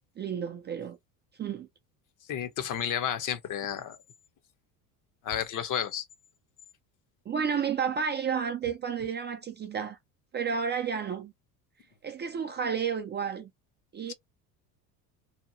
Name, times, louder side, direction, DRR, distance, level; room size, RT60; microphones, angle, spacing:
voice 1, 0.2-1.0 1.4-1.7 7.3-10.0 10.3-11.3 12.0-13.5 13.9-14.1, right 7 dB, 25° right, 0.4 m, -31 dB
voice 2, 2.3-4.0 5.2-6.1, left 9 dB, 45° left, 0.7 m, -31 dB
2.8 x 2.1 x 2.6 m
supercardioid pair, 85°, 44 cm